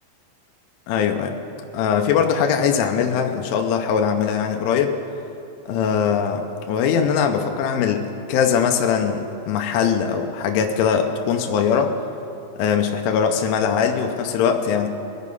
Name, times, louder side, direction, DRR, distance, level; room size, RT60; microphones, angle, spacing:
voice 1, 0.9-1.3 1.7-4.9 5.7-9.2 9.5-11.9 12.6-14.9, left 7 dB, 85° left, 4 dB, 3.1 m, -21 dB
22.0 x 8.4 x 5.4 m, 2.7 s
omnidirectional pair, 5.9 m